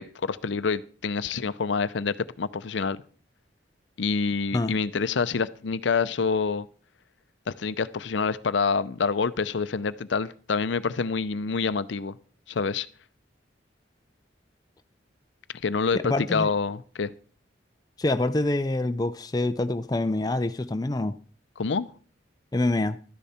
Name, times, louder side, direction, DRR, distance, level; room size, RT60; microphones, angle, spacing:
voice 1, 0.0-3.0 4.0-6.7 7.5-12.2 12.5-12.9 15.6-17.1 21.6-21.9, left 5 dB, 75° left, 0.6 m, -27 dB
voice 2, 15.9-16.5 18.0-21.2 22.5-23.0, left 2 dB, 20° left, 0.5 m, -26 dB
13.0 x 10.0 x 4.2 m
head